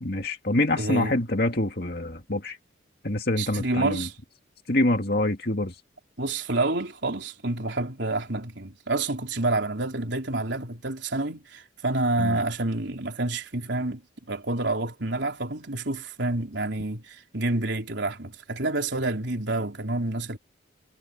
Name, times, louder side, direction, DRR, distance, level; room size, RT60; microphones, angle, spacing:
voice 1, 0.0-2.6 3.0-4.1 4.7-5.7 12.2-12.4, left 1 dB, 50° left, 2.2 m, -25 dB
voice 2, 0.8-1.2 3.4-4.1 6.2-14.0 14.3-20.4, right 2 dB, 65° right, 3.8 m, -28 dB
head